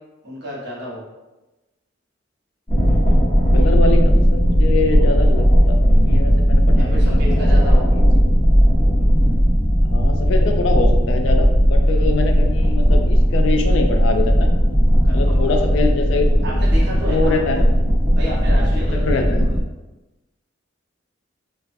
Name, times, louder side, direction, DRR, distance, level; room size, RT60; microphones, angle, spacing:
voice 1, 0.2-1.0 6.7-7.9 15.0-15.6 16.4-17.7 18.2-19.5, equal, 55° right, -6 dB, 0.8 m, -31 dB
sound 1, 2.7-19.6, equal, 15° left, 0.7 m, -16 dB
voice 2, 3.5-7.5 8.1-8.4 9.8-14.5 15.1-16.5 17.0-17.8 18.7-19.5, left 3 dB, 75° left, 4 dB, 0.3 m, -24 dB
2.3 x 2.2 x 2.5 m, 1.1 s
head